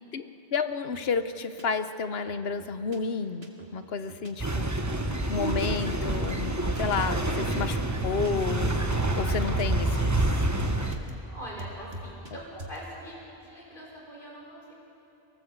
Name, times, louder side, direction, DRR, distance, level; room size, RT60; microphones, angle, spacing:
voice 1, 0.5-4.8 5.3-10.2, left 5 dB, 75° left, 10 dB, 1.2 m, -31 dB
sound 1, 0.9-1.1 1.6-1.7 2.3-3.0 3.4-3.7 4.1-4.3 4.6-4.7 5.3-5.6 6.3-7.0 7.6-8.6 8.9-11.1 11.6-12.3 12.6-12.8, right 1 dB, 75° right, 2.3 m, -43 dB
sound 2, 4.4-11.0, right 2 dB, 15° right, 1.2 m, -27 dB
voice 2, 11.2-14.7, equal, 55° left, -3 dB, 5.6 m, -43 dB
24.0 x 18.5 x 7.9 m, 3.0 s
omnidirectional pair, 1.0 m